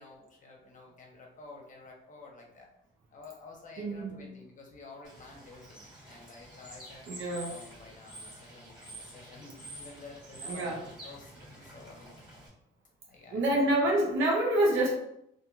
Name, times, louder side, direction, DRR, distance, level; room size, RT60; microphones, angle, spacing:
voice 1, 0.0-2.7 3.1-7.1 7.4-10.8 11.0-12.1 13.1-13.4, left 3 dB, 40° left, -1 dB, 0.9 m, -51 dB
voice 2, 3.8-4.2 7.1-7.5 10.5-10.8 13.3-14.9, right 1 dB, 80° right, -2 dB, 0.8 m, -27 dB
Bird / Water, 5.0-12.5, right 1 dB, 20° right, 1.3 m, -48 dB
2.8 x 2.6 x 2.4 m, 0.77 s
cardioid pair, 90°, 20 cm